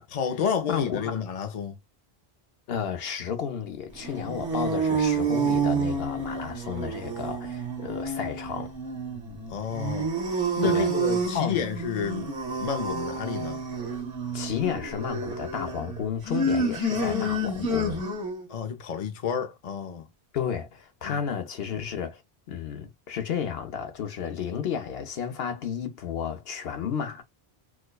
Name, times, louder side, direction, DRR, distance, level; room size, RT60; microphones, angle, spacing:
voice 1, 0.1-1.8 9.5-10.1 10.6-12.3 12.6-13.6 18.5-20.1 21.0-21.2, left 7 dB, 50° left, 0.5 m, -30 dB
voice 2, 0.7-1.2 2.7-8.7 10.6-10.9 11.3-11.6 14.3-18.0 20.3-22.2 22.5-27.2, left 7 dB, 70° left, 0.9 m, -32 dB
sound 1, 4.0-18.5, right 3 dB, 45° right, 1.1 m, -29 dB
4.5 x 2.2 x 2.2 m
omnidirectional pair, 1.1 m